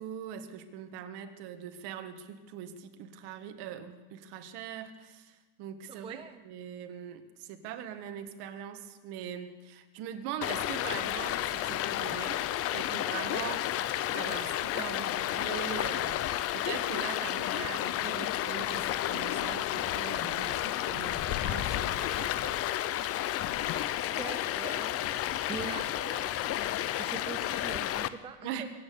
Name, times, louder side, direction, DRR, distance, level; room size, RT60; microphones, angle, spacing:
voice 1, 0.0-6.2 6.5-12.4 12.7-13.6 14.1-16.3 16.5-22.6 28.4-28.7, right 9 dB, 55° right, 8 dB, 1.7 m, -41 dB
voice 2, 5.9-6.4 13.4-13.5 24.2-25.0 25.5-28.7, right 5 dB, 10° right, 7 dB, 0.6 m, -43 dB
Stream, 10.4-28.1, left 13 dB, 30° left, 0.5 m, -31 dB
23.5 x 8.9 x 6.9 m, 1.3 s
supercardioid pair, 125°, 48 cm